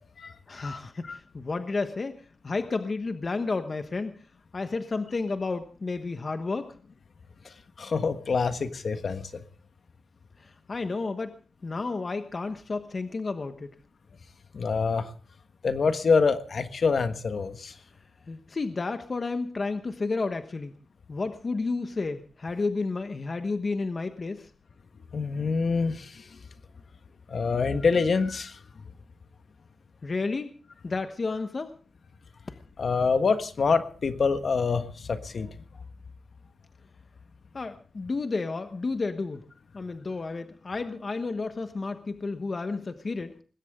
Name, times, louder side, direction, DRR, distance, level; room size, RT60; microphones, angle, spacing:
voice 1, 0.5-4.2 4.5-6.7 10.4-11.3 11.6-13.7 18.3-20.7 21.1-24.5 30.0-30.6 30.8-31.7 37.5-39.4 39.7-43.3, left 3 dB, 40° left, 8 dB, 1.2 m, -31 dB
voice 2, 7.8-9.3 14.5-15.1 15.6-17.7 25.1-26.1 27.3-28.5 32.8-35.5, left 4 dB, 60° left, 9 dB, 1.5 m, -25 dB
20.5 x 17.0 x 3.7 m, 0.39 s
wide cardioid pair, 120°, 0 cm